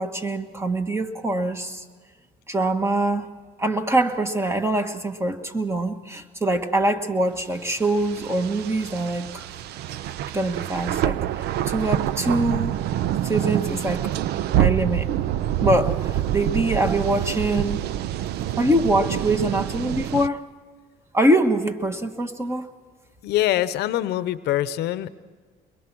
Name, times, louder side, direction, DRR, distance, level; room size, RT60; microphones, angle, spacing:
voice 1, 0.0-1.8 2.5-3.3 3.6-9.4 10.3-11.2 11.7-12.7 13.2-14.1 14.5-15.1 15.6-17.8 18.6-20.4 21.1-22.7, right 1 dB, 15° right, 8 dB, 1.5 m, -24 dB
sound 1, 7.6-20.3, right 12 dB, 75° right, 0.6 m, -26 dB
voice 2, 23.2-25.1, left 13 dB, 75° left, 15 dB, 0.8 m, -24 dB
22.5 x 22.5 x 6.1 m, 1.5 s
cardioid pair, 110°, 17 cm